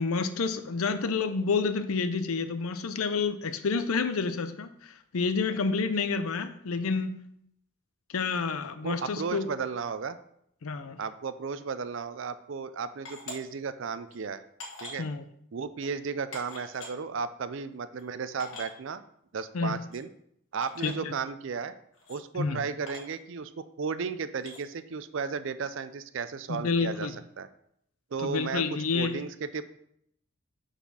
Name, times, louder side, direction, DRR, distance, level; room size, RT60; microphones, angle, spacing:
voice 1, 0.0-7.1 8.1-9.5 10.6-11.0 15.0-15.2 19.5-19.8 20.8-21.1 22.3-22.6 26.5-27.1 28.2-29.1, left 4 dB, 80° left, 10 dB, 0.6 m, -29 dB
voice 2, 8.8-10.2 11.0-14.4 14.8-15.1 15.5-19.0 19.3-20.1 20.5-21.7 22.1-27.5 28.1-28.6 28.9-29.6, right 5 dB, 60° right, 13 dB, 0.4 m, -34 dB
sound 1, 13.0-13.4 14.1-14.2 14.6-15.0 15.8-15.9 16.3-16.9 17.7-17.8 18.0-18.1 18.4-18.7 19.9-20.0 20.6-20.9 21.9-22.2 22.9-23.1 24.4-24.6, left 2 dB, 65° left, 1.6 m, -43 dB
5.9 x 4.1 x 5.5 m, 0.71 s
head